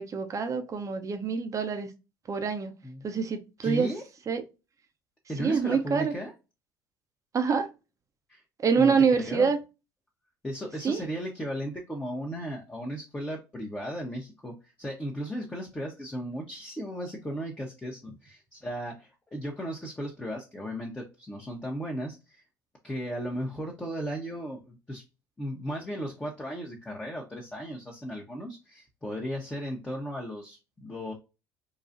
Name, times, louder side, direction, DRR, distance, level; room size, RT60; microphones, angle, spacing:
voice 1, 0.0-1.9 2.3-2.7 3.0-3.9 4.3-4.4 5.4-6.1 7.3-7.7 8.6-9.6 10.8-11.0, right 5 dB, 35° right, 0.8 m, -26 dB
voice 2, 3.6-4.0 5.3-6.3 8.3-8.4 8.8-9.5 10.4-22.4 22.8-25.0 25.4-31.1, equal, 10° left, 1.0 m, -36 dB
3.9 x 2.3 x 2.6 m
hypercardioid pair, 75°, 9 cm